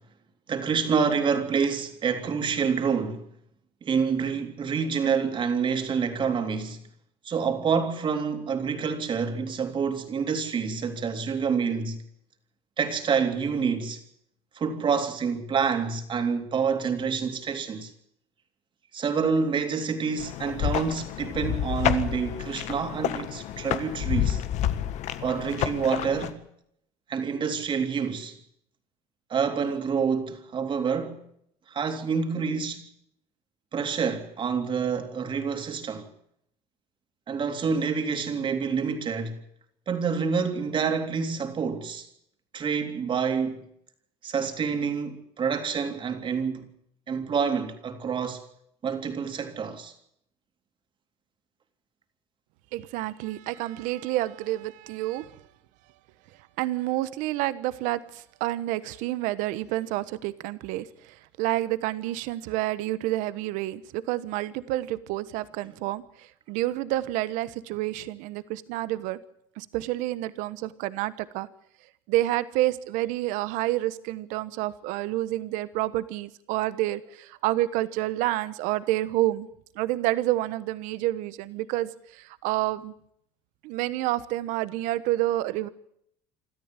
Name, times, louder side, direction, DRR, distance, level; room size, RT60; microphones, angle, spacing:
voice 1, 0.5-3.3 3.8-6.8 7.2-12.0 12.8-14.0 14.5-17.9 18.9-24.4 25.2-26.4 27.1-28.4 29.3-31.2 31.7-32.8 33.7-36.1 37.3-39.4 39.9-42.1 42.5-43.6 44.2-46.7 47.1-48.4 48.8-49.9, right 6 dB, 40° right, 3.4 m, -27 dB
sound 1, 20.2-26.3, left 11 dB, 60° left, 1.7 m, -29 dB
voice 2, 52.7-55.3 56.6-60.9 61.4-66.0 66.5-69.2 69.6-71.5 72.1-79.5 79.7-82.9 83.6-85.7, right 16 dB, 75° right, 1.2 m, -29 dB
26.5 x 13.0 x 9.0 m
supercardioid pair, 105°, 13 cm